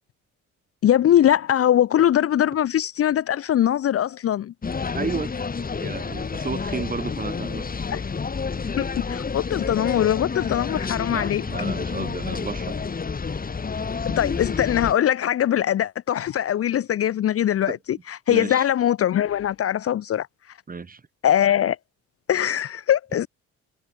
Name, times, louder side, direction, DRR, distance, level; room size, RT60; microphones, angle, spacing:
voice 1, 0.8-4.5 7.9-8.0 8.8-11.4 14.2-20.3 21.2-21.8 22.3-23.3, left 11 dB, 50° left, 0.6 m, -21 dB
sound 1, 4.6-14.9, left 5 dB, 30° left, 1.9 m, -29 dB
voice 2, 4.9-7.7 8.6-8.7 11.1-12.8 17.7-17.8 18.3-18.7 20.7-21.0, right 4 dB, 30° right, 2.4 m, -32 dB
cardioid pair, 90°, 30 cm